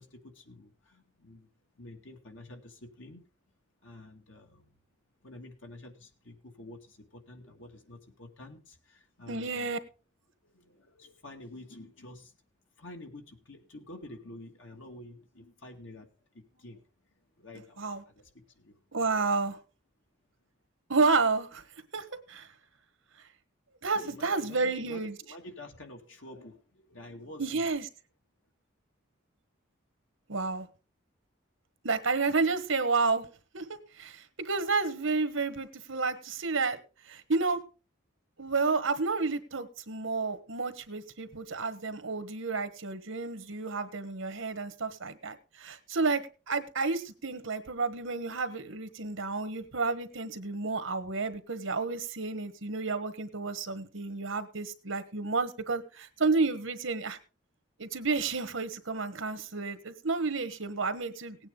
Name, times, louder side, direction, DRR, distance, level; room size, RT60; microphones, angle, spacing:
voice 1, 0.0-1.5 1.7-3.2 3.8-4.8 5.2-9.8 10.4-12.4 12.8-16.8 17.1-18.8 23.9-27.7, left 1 dB, 70° left, 2.4 m, -49 dB
voice 2, 9.3-9.8 17.8-18.0 18.9-19.6 20.9-21.6 21.9-22.5 23.8-25.1 27.4-27.8 30.3-30.7 31.8-33.3 33.5-33.7 34.0-36.8 37.0-37.6 38.4-57.2 57.8-61.4, right 4 dB, 75° right, 1.3 m, -31 dB
17.5 x 9.0 x 3.9 m
head